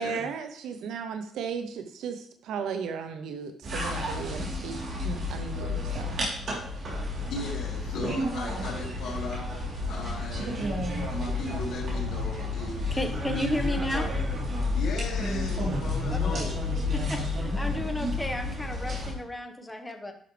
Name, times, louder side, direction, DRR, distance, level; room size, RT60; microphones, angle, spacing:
voice 1, 0.0-4.8 5.0-6.2, right 6 dB, 80° right, 8 dB, 0.8 m, -35 dB
sound 1, 3.6-19.1, left 2 dB, 55° right, 3.5 m, -30 dB
voice 2, 7.3-9.5 9.9-10.5 11.1-13.1 14.7-16.6, left 3 dB, 70° left, -3 dB, 3.2 m, -37 dB
voice 3, 12.9-14.1 16.1-16.5 16.9-20.1, left 1 dB, 10° left, 5 dB, 1.3 m, -33 dB
11.0 x 6.2 x 3.3 m, 0.65 s
cardioid pair, 90°, 0 cm